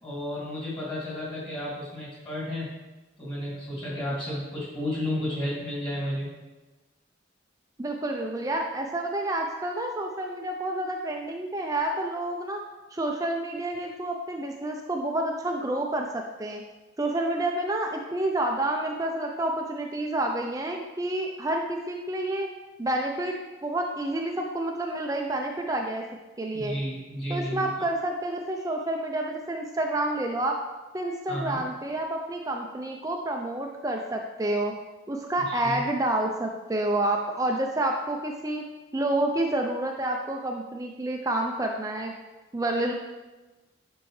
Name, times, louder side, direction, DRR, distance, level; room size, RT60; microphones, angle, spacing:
voice 1, 0.0-2.7 3.2-6.3 26.5-27.6 31.3-31.6 35.5-35.8, left 1 dB, 25° left, -7 dB, 2.5 m, -32 dB
voice 2, 7.8-12.6 12.9-16.6 17.0-22.5 22.8-23.4 23.6-26.0 26.4-26.8 27.3-30.6 30.9-34.7 35.1-38.6 38.9-42.1 42.5-42.9, right 1 dB, 15° right, 2 dB, 0.4 m, -29 dB
9.7 x 5.4 x 3.2 m, 1.2 s
head